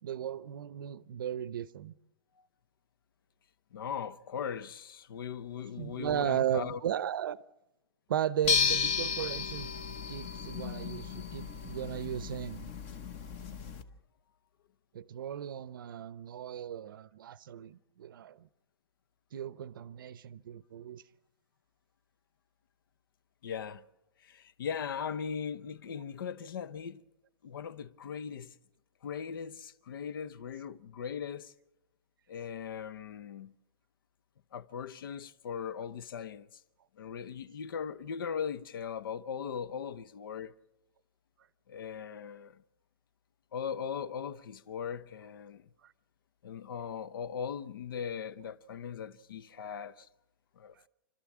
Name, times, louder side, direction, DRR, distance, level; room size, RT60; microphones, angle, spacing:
voice 1, 0.0-1.9 5.8-7.4 8.1-9.7 10.1-12.7 14.9-18.5 19.3-21.0 45.8-45.9, right 10 dB, 55° right, 0.7 m, -36 dB
voice 2, 3.7-6.8 23.4-23.8 24.2-27.0 27.4-28.5 29.0-31.5 32.3-33.5 34.5-36.6 37.0-40.5 41.7-42.6 43.5-45.6 46.4-50.1 50.6-50.7, left 7 dB, 55° left, 0.9 m, -39 dB
sound 1, 8.4-13.8, left 6 dB, 25° left, 0.9 m, -33 dB
29.5 x 13.0 x 7.3 m
hypercardioid pair, 180°, 14 cm